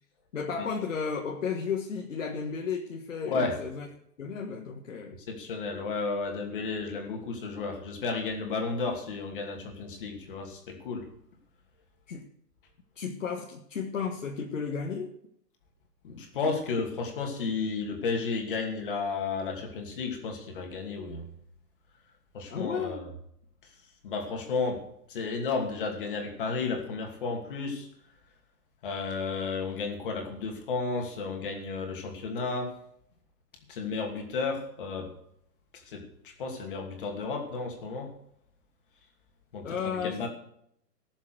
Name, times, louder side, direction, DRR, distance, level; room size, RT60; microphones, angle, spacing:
voice 1, 0.3-3.9 4.2-5.1 12.1-12.3 12.9-15.1 22.5-23.1 39.6-40.3, left 6 dB, 50° left, 2 dB, 1.6 m, -33 dB
voice 2, 3.3-3.6 5.3-11.1 16.0-21.3 22.3-23.1 23.6-23.7 24.0-24.8 25.1-27.9 28.8-32.7 33.7-35.1 35.7-38.1 39.5-40.3, left 4 dB, 30° left, 3 dB, 2.6 m, -33 dB
18.0 x 7.3 x 6.5 m, 0.71 s
hypercardioid pair, 170°, 49 cm